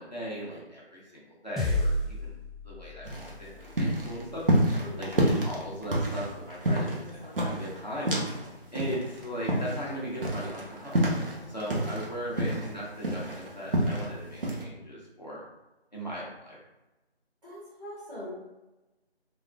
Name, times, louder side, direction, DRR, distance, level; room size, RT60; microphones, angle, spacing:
voice 1, 0.0-2.4 2.6-4.4 5.0-7.0 7.4-8.1 8.7-11.0 11.5-15.4 15.9-16.6, equal, 40° left, -7 dB, 0.7 m, -38 dB
sound 1, 1.6-6.1, left 1 dB, ahead, 0.3 m, -34 dB
sound 2, 3.0-8.5 8.8-12.1 12.4-14.1 14.4-14.6, right 1 dB, 55° right, 0.7 m, -28 dB
voice 2, 4.8-5.1 6.6-7.7 11.8-12.5 17.4-18.3, equal, 40° right, -8 dB, 1.1 m, -44 dB
3.3 x 2.3 x 2.3 m, 1.0 s
figure-of-eight pair, 180°, 33 cm